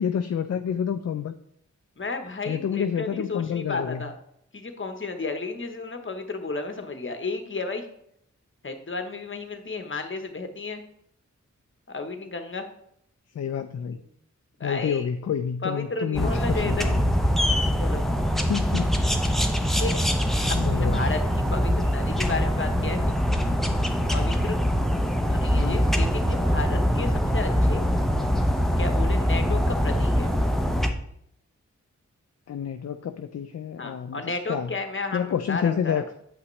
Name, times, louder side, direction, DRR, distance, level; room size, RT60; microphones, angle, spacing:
voice 1, 0.0-1.3 2.5-4.1 13.3-14.0 14.6-17.0 18.5-18.9 20.5-21.0 25.5-25.8 32.5-34.7 35.1-36.0, left 8 dB, 55° left, 9 dB, 0.4 m, -28 dB
voice 2, 2.0-4.1 4.5-7.9 8.6-10.8 11.9-12.6 13.9-14.1 14.6-15.1 15.6-16.9 17.8-18.0 19.8-19.9 20.5-23.2 24.1-24.6 25.3-27.8 28.8-30.3 33.8-36.0, left 3 dB, 40° left, 6 dB, 1.0 m, -33 dB
sound 1, 16.2-30.9, equal, ahead, 0.8 m, -23 dB
8.1 x 5.7 x 3.2 m, 0.72 s
cardioid pair, 55°, 30 cm